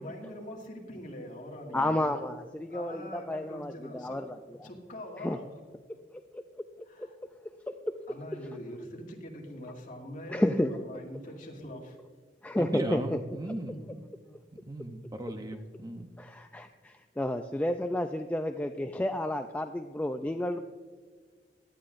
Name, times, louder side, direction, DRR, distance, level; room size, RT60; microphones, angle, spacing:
voice 1, 0.0-2.2 2.7-4.2 4.6-5.5 6.9-7.1 8.1-12.0 13.5-14.0, equal, 50° left, -1 dB, 2.1 m, -43 dB
voice 2, 1.7-4.4 5.2-5.4 6.1-6.4 10.3-10.7 12.4-13.2 13.5-13.6 16.2-20.6, left 1 dB, 10° left, 6 dB, 0.4 m, -31 dB
voice 3, 12.6-13.7 14.7-16.1, right 1 dB, 20° right, 6 dB, 0.7 m, -36 dB
17.5 x 11.5 x 2.6 m, 1.5 s
head